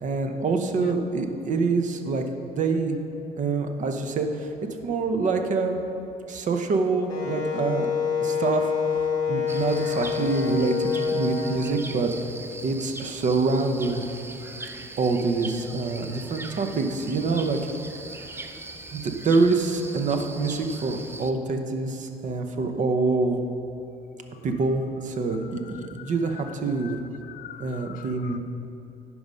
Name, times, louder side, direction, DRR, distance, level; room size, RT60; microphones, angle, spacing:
voice 1, 0.0-3.0 3.4-4.5 4.8-5.8 6.3-7.9 8.2-8.7 9.3-12.1 12.6-14.0 15.0-17.6 18.1-18.6 18.9-23.4 24.4-27.0 27.6-28.4, right 3 dB, 45° right, 6 dB, 0.8 m, -26 dB
voice 2, 0.6-1.0 25.9-26.1 26.8-28.4, left 9 dB, 55° left, 11 dB, 0.4 m, -41 dB
Wind instrument woodwind instrument, 7.1-11.7, left 6 dB, 25° left, 1.9 m, -27 dB
sound 1, 9.5-21.3, right 2 dB, 15° right, 0.4 m, -40 dB
11.0 x 4.8 x 5.2 m, 2.9 s
cardioid pair, 110°, 17 cm